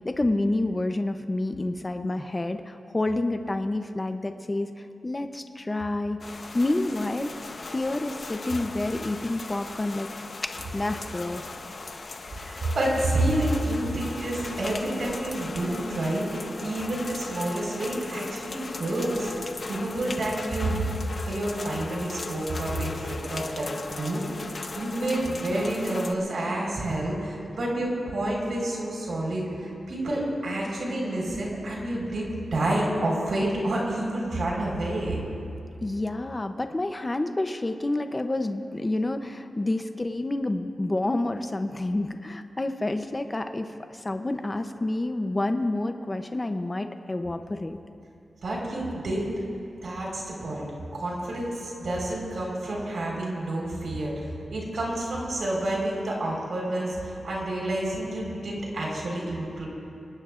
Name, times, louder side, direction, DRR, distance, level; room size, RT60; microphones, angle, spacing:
voice 1, 0.0-4.7 5.0-7.3 7.7-10.1 10.4-11.4 35.8-47.8, left 2 dB, 20° left, 7 dB, 0.6 m, -29 dB
sound 1, 6.2-26.1, left 3 dB, 45° left, 0.9 m, -38 dB
voice 2, 12.3-19.3 19.7-20.8 21.2-35.2 48.4-49.3 49.8-50.7 50.9-59.7, right 1 dB, 60° right, -3 dB, 4.4 m, -29 dB
26.0 x 19.0 x 2.5 m, 2.7 s
wide cardioid pair, 150°, 0 cm